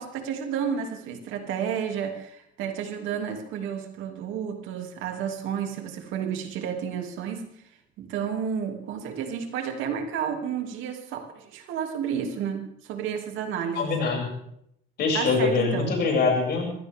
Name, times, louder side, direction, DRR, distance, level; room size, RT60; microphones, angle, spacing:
voice 1, 0.0-7.5 8.0-13.9 15.1-16.0, right 7 dB, 75° right, 4 dB, 2.8 m, -31 dB
voice 2, 13.7-14.3 15.0-16.7, left 4 dB, 55° left, -1 dB, 7.3 m, -24 dB
23.5 x 16.0 x 3.7 m, 0.72 s
cardioid pair, 130°, 20 cm